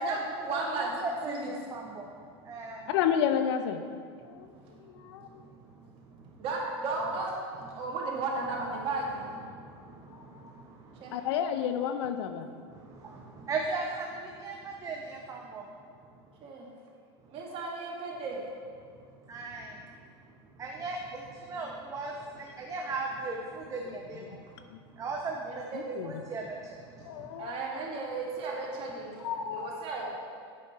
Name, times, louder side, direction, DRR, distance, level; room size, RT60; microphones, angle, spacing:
voice 1, 0.0-0.9 1.2-1.5 6.4-9.3 11.0-11.1 16.4-16.7 17.3-18.4 25.4-25.8 27.4-29.2 29.5-30.1, right 3 dB, 40° right, -2 dB, 1.9 m, -34 dB
voice 2, 0.5-2.1 2.4-2.9 9.5-11.0 12.7-15.6 19.3-19.8 20.6-24.4 24.9-26.8 27.2-27.3, right 3 dB, 20° right, 0 dB, 0.7 m, -37 dB
voice 3, 2.9-3.8 4.3-4.5 5.0-5.3 11.1-12.5 23.9-24.0 24.7-24.8 25.7-26.2 27.0-27.6 29.2-29.7, left 8 dB, 70° left, 9 dB, 0.6 m, -30 dB
8.5 x 6.4 x 4.2 m, 2.1 s
supercardioid pair, 125°, 15 cm